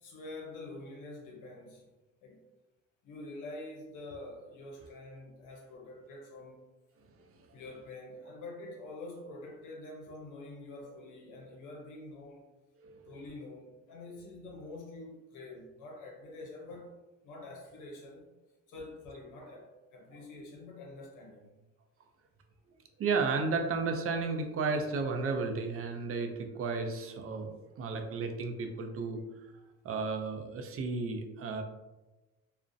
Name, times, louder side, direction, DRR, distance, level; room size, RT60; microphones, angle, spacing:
voice 1, 0.0-1.9 2.2-2.4 3.0-6.6 7.5-12.4 13.1-18.3 18.7-21.5, left 2 dB, 90° left, -1 dB, 0.6 m, -46 dB
voice 2, 12.8-13.2 23.0-29.2 29.8-31.6, right 4 dB, 50° right, 5 dB, 0.4 m, -33 dB
2.4 x 2.0 x 2.5 m, 1.1 s
cardioid pair, 90°, 30 cm